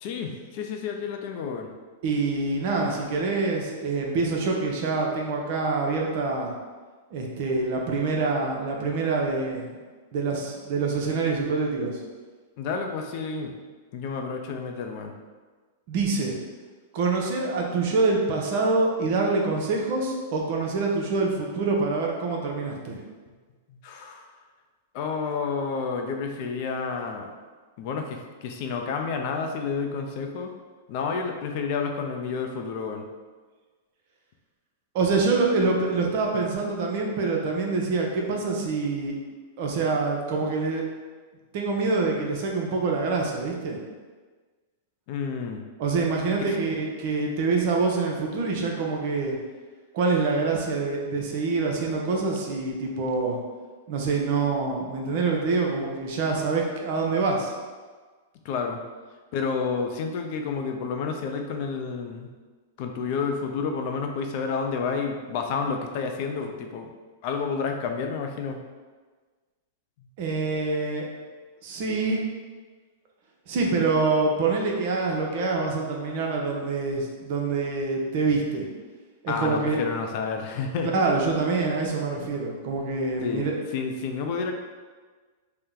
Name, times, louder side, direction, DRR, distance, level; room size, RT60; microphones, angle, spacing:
voice 1, 0.0-1.7 12.6-13.5 13.9-15.1 23.7-24.3 24.9-27.3 27.8-30.5 30.9-33.0 45.1-45.6 58.4-58.8 59.3-62.3 62.8-66.9 67.2-68.6 79.3-80.9 83.2-84.5, left 5 dB, 55° left, 4 dB, 0.4 m, -30 dB
voice 2, 2.0-6.5 7.1-9.8 10.1-12.0 15.9-16.4 16.9-23.0 34.9-39.2 39.6-40.8 41.5-43.8 45.8-49.4 49.9-53.4 53.9-57.5 70.2-71.1 71.6-72.2 73.5-78.7 79.2-79.8 80.9-83.6, right 3 dB, 55° right, 0 dB, 0.6 m, -25 dB
2.8 x 2.1 x 3.7 m, 1.4 s
hypercardioid pair, 110°, 0 cm